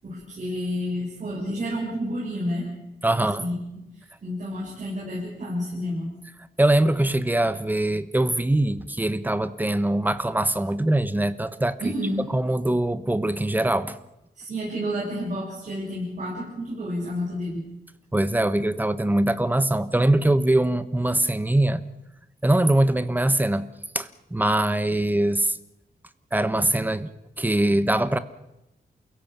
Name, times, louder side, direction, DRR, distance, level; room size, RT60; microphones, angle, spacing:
voice 1, 0.0-2.7 3.2-3.8 4.2-6.1 11.8-12.3 14.4-17.6, equal, 50° right, -6 dB, 7.5 m, -30 dB
voice 2, 3.0-3.5 6.6-11.9 12.3-14.0 18.1-21.8 22.4-23.7 23.9-25.6 26.3-27.1 27.4-28.2, right 1 dB, 10° right, 13 dB, 1.1 m, -22 dB
28.5 x 16.5 x 7.4 m, 0.90 s
wide cardioid pair, 135°, 16 cm